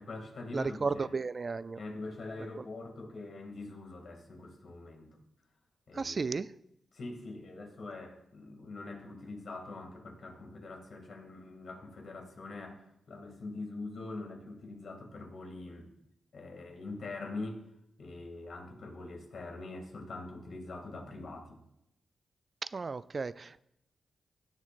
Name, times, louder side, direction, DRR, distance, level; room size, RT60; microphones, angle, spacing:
voice 1, 0.0-1.1 1.8-5.2 5.9-6.2 6.9-15.9 16.3-17.7 18.0-21.6, left 2 dB, 65° left, 2 dB, 2.3 m, -43 dB
voice 2, 0.5-1.8 2.6-2.7 5.9-6.5 22.7-23.6, right 4 dB, 45° right, 17 dB, 0.3 m, -34 dB
16.0 x 7.3 x 2.5 m, 0.79 s
cardioid pair, 50°, 0 cm